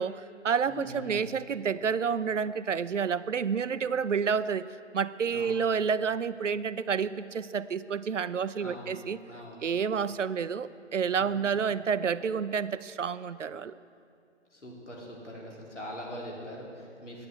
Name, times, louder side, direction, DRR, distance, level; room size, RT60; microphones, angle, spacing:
voice 1, 0.0-4.7 4.9-9.2 9.6-13.7, right 6 dB, 85° right, 15 dB, 0.6 m, -29 dB
voice 2, 0.7-1.3 5.3-5.6 8.6-9.0 9.3-9.7 11.3-11.4 14.5-17.3, equal, 75° left, -3 dB, 3.7 m, -42 dB
11.0 x 9.5 x 7.6 m, 2.4 s
figure-of-eight pair, 150°, 36 cm